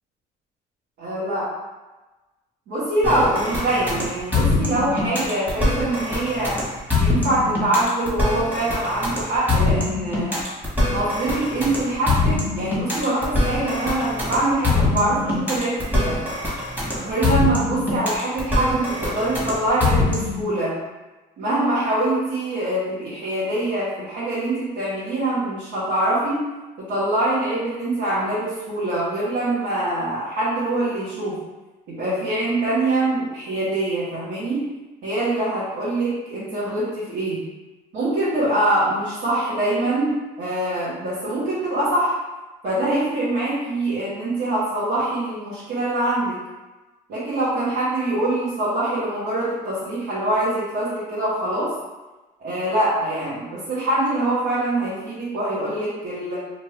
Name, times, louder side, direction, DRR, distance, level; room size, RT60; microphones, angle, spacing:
voice 1, 1.0-1.5 2.7-6.6 7.0-10.4 10.8-16.2 17.0-20.8 21.4-26.5 26.8-31.4 31.9-34.7 35.0-37.4 37.9-42.2 42.6-46.4 47.1-51.7 52.4-56.4, right 1 dB, 85° right, -11 dB, 1.2 m, -24 dB
sound 1, 3.0-20.4, left 3 dB, 10° right, 1.2 m, -23 dB
2.6 x 2.5 x 3.3 m, 1.1 s
cardioid pair, 110°, 17 cm